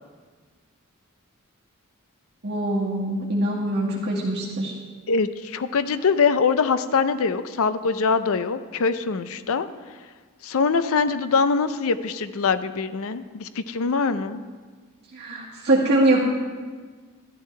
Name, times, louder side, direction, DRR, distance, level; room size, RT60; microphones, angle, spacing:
voice 1, 2.4-4.7 15.1-16.2, right 1 dB, 50° right, -6 dB, 1.9 m, -23 dB
voice 2, 5.1-9.7 10.4-14.4, left 5 dB, 65° left, 12 dB, 0.5 m, -23 dB
12.5 x 12.5 x 3.3 m, 1.5 s
head